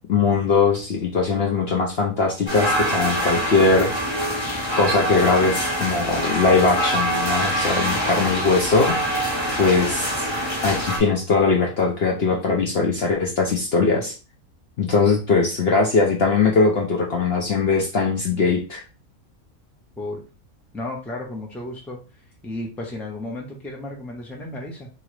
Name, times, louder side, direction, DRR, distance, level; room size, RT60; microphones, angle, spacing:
voice 1, 0.1-3.9 4.8-9.0 9.6-10.3 10.6-14.2 14.8-18.8, left 4 dB, 55° left, 0 dB, 0.7 m, -20 dB
sound 1, 2.5-11.0, equal, 20° left, 1.1 m, -24 dB
voice 2, 20.7-22.0 22.4-24.9, left 1 dB, ahead, 0 dB, 0.6 m, -33 dB
3.8 x 2.9 x 3.1 m, 0.33 s
omnidirectional pair, 1.5 m